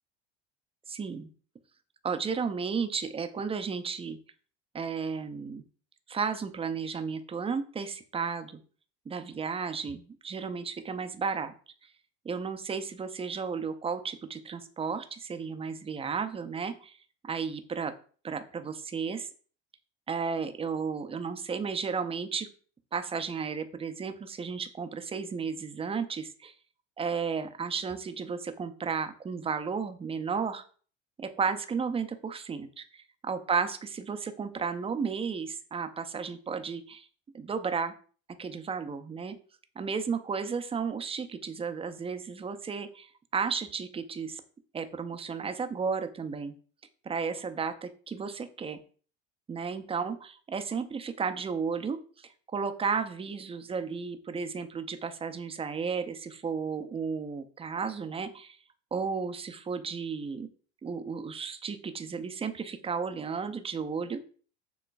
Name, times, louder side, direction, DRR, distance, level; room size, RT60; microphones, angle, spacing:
voice 1, 0.9-1.3 2.0-4.2 4.7-5.6 6.1-8.6 9.1-11.5 12.2-17.0 17.2-17.9 18.2-19.3 20.1-22.5 22.9-26.5 27.0-30.6 31.2-37.1 37.3-37.9 38.4-39.4 39.8-44.4 44.7-46.5 47.0-48.8 49.5-58.6 58.9-60.5 60.8-64.3, right 5 dB, 15° right, 8 dB, 0.5 m, -33 dB
6.9 x 3.0 x 2.5 m, 0.42 s
hypercardioid pair, 80°, 34 cm